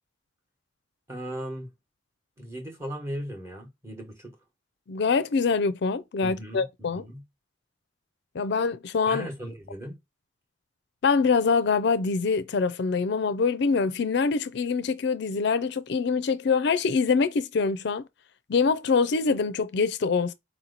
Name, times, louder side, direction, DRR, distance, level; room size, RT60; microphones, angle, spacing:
voice 1, 1.1-1.7 2.4-4.3 6.2-7.2 9.1-10.0, equal, 15° right, 1.1 m, -37 dB
voice 2, 4.9-7.0 8.3-9.3 11.0-18.0 18.5-20.3, left 5 dB, 60° left, 0.4 m, -24 dB
4.3 x 2.9 x 3.8 m
head